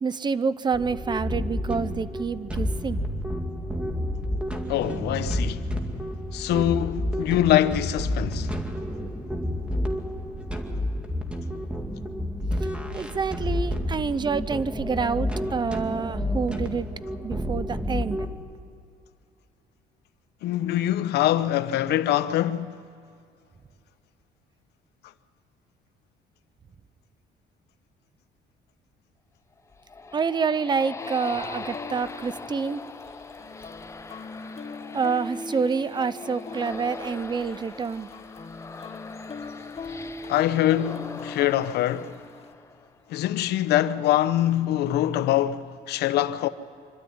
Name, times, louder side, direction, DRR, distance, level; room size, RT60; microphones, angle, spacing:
voice 1, 0.0-3.0 12.9-16.9 17.2-18.3 30.1-32.8 34.9-38.1, right 5 dB, 25° right, 0.7 m, -27 dB
sound 1, 0.7-18.3, equal, 5° right, 2.3 m, -30 dB
voice 2, 4.7-5.7 6.3-8.5 20.4-22.8 40.3-42.2 43.1-46.5, left 12 dB, 75° left, 0.9 m, -24 dB
sound 2, 29.5-43.1, left 3 dB, 15° left, 0.8 m, -41 dB
sound 3, 31.0-42.5, left 3 dB, 35° left, 1.4 m, -41 dB
26.0 x 12.5 x 9.5 m
cardioid pair, 110°, 17 cm